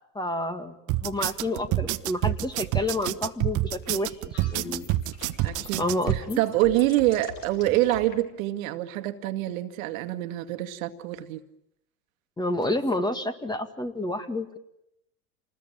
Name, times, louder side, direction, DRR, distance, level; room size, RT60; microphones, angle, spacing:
voice 1, 0.1-0.7 1.0-4.9 5.8-6.4 12.4-14.6, left 1 dB, 10° left, 9 dB, 2.1 m, -29 dB
sound 1, 0.9-6.2, right 16 dB, 40° right, 1.2 m, -27 dB
sound 2, 3.8-8.2, left 6 dB, 45° left, 5.8 m, -44 dB
voice 2, 5.4-5.8 6.1-11.4, right 15 dB, 65° right, 9 dB, 2.0 m, -26 dB
27.5 x 20.5 x 9.2 m, 0.81 s
hypercardioid pair, 105°, 44 cm